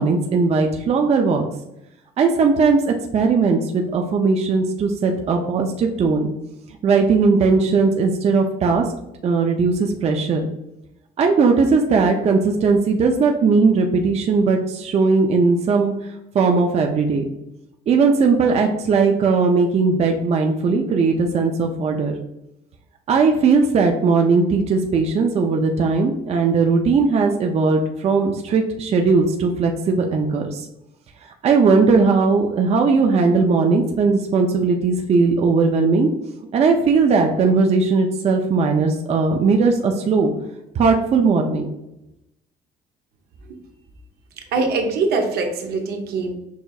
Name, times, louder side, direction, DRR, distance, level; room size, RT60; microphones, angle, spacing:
voice 1, 0.0-1.4 2.2-6.3 6.8-8.8 9.2-10.5 11.2-15.9 16.3-17.2 17.9-22.1 23.1-30.7 31.4-36.1 36.5-40.3 40.8-41.7, right 4 dB, 40° right, 3 dB, 0.5 m, -18 dB
voice 2, 44.5-46.3, right 3 dB, 70° right, 3 dB, 0.8 m, -22 dB
6.4 x 2.6 x 2.3 m, 0.87 s
cardioid pair, 110°, 17 cm